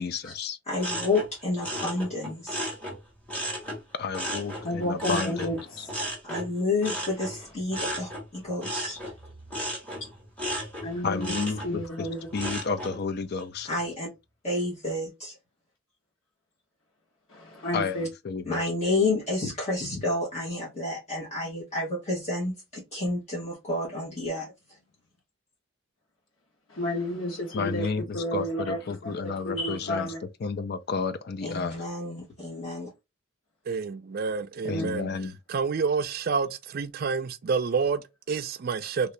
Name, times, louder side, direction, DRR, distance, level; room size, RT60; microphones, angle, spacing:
voice 1, 0.0-0.6 4.0-5.9 11.0-13.7 17.7-18.6 27.5-30.1 30.4-31.7 34.6-35.4, left 5 dB, 50° left, 0.4 m, -31 dB
voice 2, 0.7-2.7 6.2-9.0 13.6-14.1 14.4-15.4 18.4-24.5 31.4-32.9, left 2 dB, 35° left, 1.1 m, -30 dB
sound 1, 0.8-3.8 4.1-13.0 13.4-13.9, equal, 5° left, 1.3 m, -35 dB
voice 3, 4.6-5.9 10.8-11.3 11.6-12.3 17.3-18.1 26.7-27.9 28.1-30.2 34.7-34.9, equal, 85° left, 1.3 m, -31 dB
voice 4, 33.7-35.1 35.5-39.1, right 5 dB, 50° right, 0.4 m, -28 dB
2.9 x 2.7 x 3.2 m
head